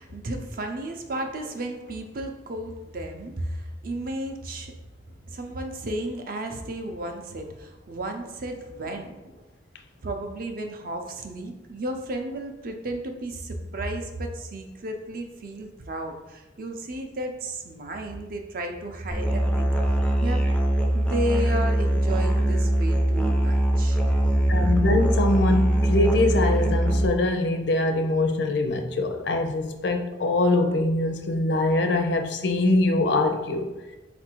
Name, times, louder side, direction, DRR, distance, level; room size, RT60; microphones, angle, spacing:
voice 1, 0.0-4.7 5.1-9.4 10.0-20.4 20.9-24.0 24.6-24.7, right 1 dB, 50° right, 0.5 m, -33 dB
Musical instrument, 19.1-27.1, right 1 dB, 5° left, 0.3 m, -22 dB
voice 2, 24.5-33.7, left 2 dB, 65° left, 0.5 m, -23 dB
4.0 x 2.5 x 4.4 m
head